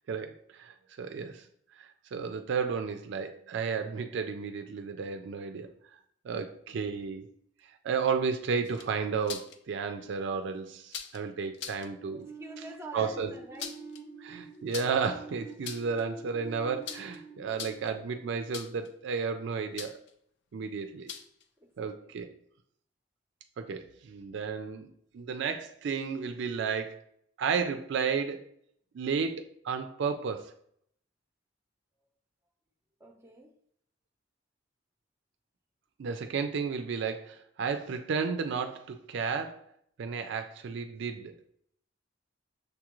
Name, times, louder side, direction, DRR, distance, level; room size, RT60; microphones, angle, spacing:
voice 1, 0.0-1.5 1.7-5.7 6.2-7.3 7.7-12.3 12.9-13.3 14.2-20.0 20.5-21.1 21.8-22.3 23.6-27.1 27.4-28.4 28.9-30.5 36.0-39.7 40.0-41.3, right 5 dB, 65° right, 7 dB, 0.4 m, -33 dB
sound 1, 8.6-9.6 10.9-11.2 11.5-11.9 13.3-14.0 14.7-15.1 15.5-16.0 16.9-17.2 17.5-18.0 18.5-18.9 19.8-20.1 21.1-21.4, left 7 dB, 60° left, 0.4 m, -41 dB
voice 2, 12.1-13.7 21.8-22.1 33.0-33.5, right 1 dB, 15° right, 2 dB, 0.6 m, -46 dB
sound 2, 12.2-19.0, right 3 dB, 40° left, 1.0 m, -47 dB
6.6 x 2.4 x 2.9 m, 0.67 s
head